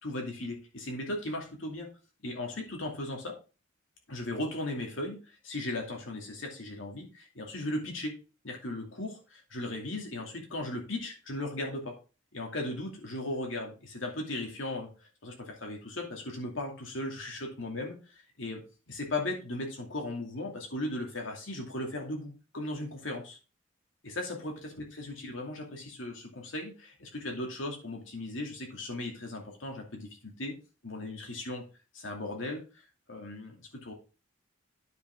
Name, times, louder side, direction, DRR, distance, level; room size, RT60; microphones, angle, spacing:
voice 1, 0.0-1.9 2.2-3.3 4.1-8.2 8.4-11.9 12.3-14.9 15.2-18.6 18.9-23.4 24.0-30.5 30.8-31.6 31.9-32.6 33.1-33.9, left 1 dB, 75° left, 1 dB, 2.5 m, -37 dB
9.4 x 5.6 x 3.7 m, 0.32 s
head